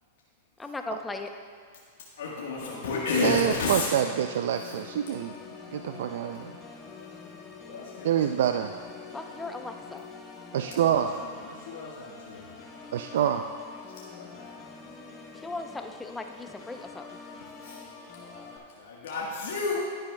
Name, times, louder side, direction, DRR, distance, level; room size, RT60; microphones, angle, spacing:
voice 1, 0.6-1.3 9.1-10.1 15.4-17.1, left 3 dB, 10° left, 5 dB, 0.6 m, -37 dB
voice 2, 2.2-3.9 4.5-4.7 7.6-8.4 10.9-12.6 14.2-14.5 17.4-17.8 18.1-19.8, left 4 dB, 70° left, -4 dB, 1.4 m, -33 dB
Organ, 2.6-18.6, left 5 dB, 25° left, 1.1 m, -46 dB
voice 3, 3.2-5.3 5.7-6.5 8.0-8.7 10.5-11.1 12.9-13.4, right 10 dB, 70° right, 7 dB, 0.3 m, -26 dB
10.5 x 10.5 x 2.3 m, 2.1 s
hypercardioid pair, 115°, 0 cm